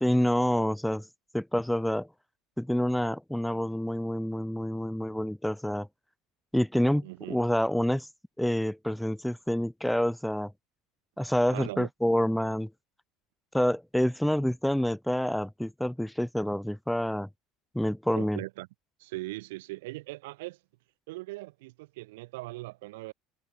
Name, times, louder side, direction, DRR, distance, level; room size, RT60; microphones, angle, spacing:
voice 1, 0.0-1.0 1.3-2.1 2.6-5.9 6.5-8.1 8.4-10.5 11.2-12.7 13.5-17.3 17.7-18.4, equal, ahead, 0.4 m, -27 dB
voice 2, 7.0-7.4 11.5-11.9 18.2-18.7 19.0-20.6 21.1-23.1, right 20 dB, 85° right, 3.8 m, -39 dB
supercardioid pair, 115°, 0 cm